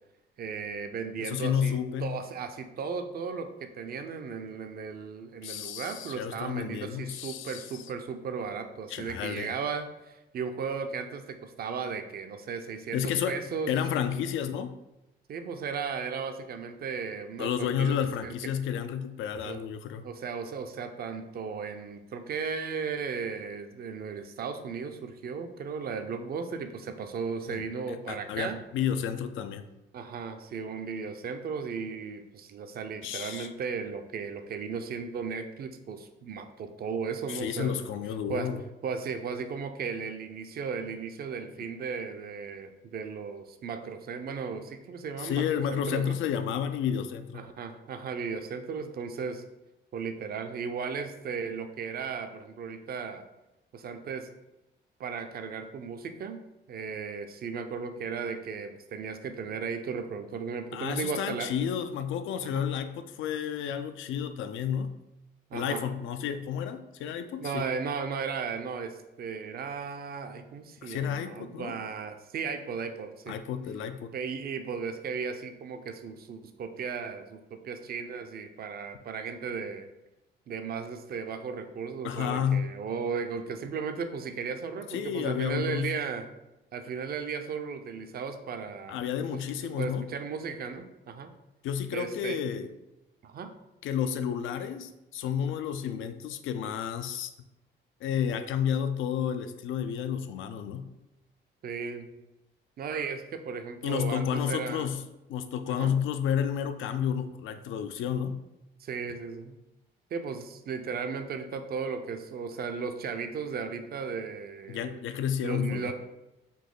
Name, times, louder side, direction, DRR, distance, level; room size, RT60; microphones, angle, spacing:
voice 1, 0.4-13.7 15.3-18.3 19.4-19.6 20.0-28.6 29.9-37.8 38.3-38.5 38.8-45.5 45.7-46.2 47.3-49.4 49.9-53.2 53.7-54.3 55.0-61.5 62.4-62.7 65.5-65.9 67.4-73.4 74.1-79.9 80.5-86.3 86.7-89.0 89.8-91.3 91.9-92.4 93.2-93.5 101.6-102.2 102.8-104.9 105.7-105.9 108.8-109.6 110.1-115.0 115.4-115.9, right 5 dB, 50° right, 7 dB, 0.5 m, -36 dB
voice 2, 1.2-2.1 5.4-7.7 8.9-9.5 12.9-13.4 13.7-14.7 17.4-20.0 27.5-27.6 27.9-29.6 33.0-33.5 37.3-38.6 45.2-47.4 60.7-64.9 65.5-67.7 70.8-71.7 73.3-74.1 82.0-82.7 84.9-85.9 88.9-90.1 91.6-92.7 93.8-97.3 98.0-100.9 103.8-105.0 105.3-108.4 114.7-115.9, left 8 dB, 80° left, 9 dB, 0.4 m, -31 dB
4.1 x 2.7 x 3.7 m, 0.95 s
cardioid pair, 90°, 20 cm